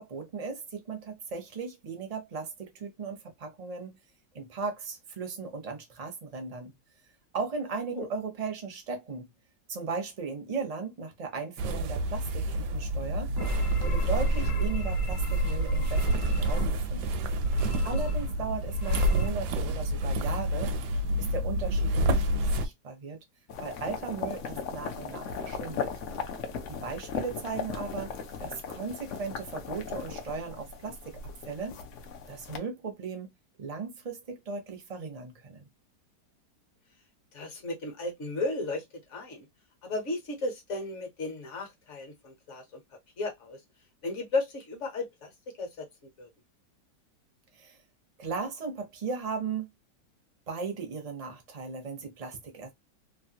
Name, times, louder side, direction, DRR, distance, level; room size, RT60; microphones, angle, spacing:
voice 1, 0.0-4.0 4.3-6.7 7.3-9.3 9.7-13.3 13.8-17.2 17.8-20.7 21.3-23.2 23.6-25.9 26.7-28.1 28.4-31.0 31.5-31.8 32.3-33.3 33.6-35.7 47.5-47.8 48.2-49.7 50.5-52.7, right 4 dB, 45° right, 0.5 m, -37 dB
sound 1, 11.6-22.7, equal, 75° right, 1.1 m, -29 dB
sound 2, 13.4-16.9 17.4-18.4 18.7-19.3, right 2 dB, 85° left, 1.3 m, -29 dB
sound 3, 23.5-32.6, left 6 dB, 65° left, 0.7 m, -37 dB
voice 2, 37.3-38.8 39.1-39.5 39.8-42.8 43.2-43.6 44.0-45.3 45.6-45.9 46.2-46.3, left 2 dB, 50° left, 1.1 m, -34 dB
3.2 x 2.3 x 2.8 m
omnidirectional pair, 1.9 m